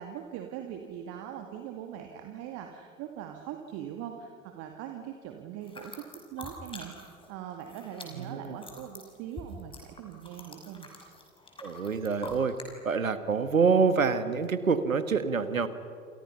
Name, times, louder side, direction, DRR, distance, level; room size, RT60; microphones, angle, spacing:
voice 1, 0.0-6.0 6.3-10.9, right 10 dB, 35° right, 4 dB, 2.2 m, -41 dB
sound 1, 5.6-7.3 7.5-12.7, left 3 dB, 15° left, 5.9 m, -46 dB
voice 2, 8.2-8.6 11.6-12.6 12.8-15.7, right 5 dB, 75° right, 11 dB, 1.9 m, -26 dB
28.5 x 28.5 x 5.8 m, 2.3 s
figure-of-eight pair, 95°, 40 cm